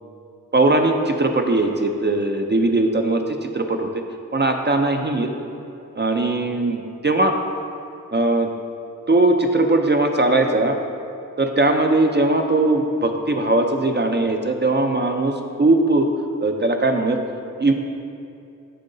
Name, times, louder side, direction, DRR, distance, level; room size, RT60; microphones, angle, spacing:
voice 1, 0.5-3.9 4.3-5.3 6.0-7.3 8.1-8.5 9.1-10.8 11.4-16.1 16.4-17.2 17.6-17.7, right 2 dB, 30° right, 4 dB, 0.4 m, -19 dB
7.7 x 5.4 x 3.8 m, 2.6 s
wide cardioid pair, 95°, 35 cm